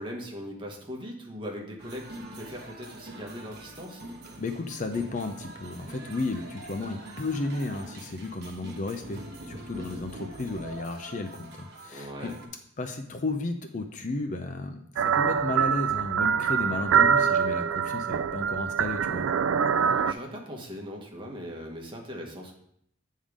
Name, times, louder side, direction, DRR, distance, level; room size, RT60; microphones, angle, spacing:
voice 1, 0.0-4.0 11.9-12.4 19.7-22.5, equal, 25° right, 0 dB, 1.2 m, -40 dB
sound 1, 1.8-12.5, right 1 dB, 55° right, 1.2 m, -44 dB
voice 2, 4.4-12.3 12.8-19.3, left 2 dB, 40° left, 6 dB, 0.5 m, -33 dB
sound 2, 15.0-20.1, right 7 dB, 75° right, 0.3 m, -24 dB
8.9 x 3.7 x 4.9 m, 0.71 s
head